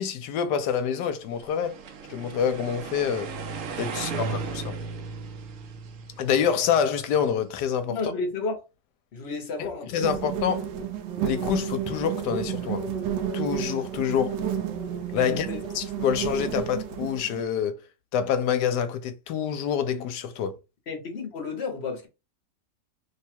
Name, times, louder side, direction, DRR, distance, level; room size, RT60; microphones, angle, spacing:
voice 1, 0.0-1.8 2.1-3.3 3.8-4.8 6.2-8.1 9.6-10.7 11.2-12.9 13.3-14.4 15.1-15.5 15.7-17.8 18.1-20.6, left 8 dB, 75° left, 1.2 m, -27 dB
sound 1, 1.3-7.5, right 5 dB, 60° right, 0.9 m, -36 dB
voice 2, 3.9-4.3 7.9-8.6 9.1-10.1 15.2-15.6 20.9-22.1, left 4 dB, 50° left, 0.9 m, -32 dB
sound 2, 10.0-17.4, right 8 dB, 80° right, 1.2 m, -31 dB
3.2 x 2.3 x 4.3 m
omnidirectional pair, 1.9 m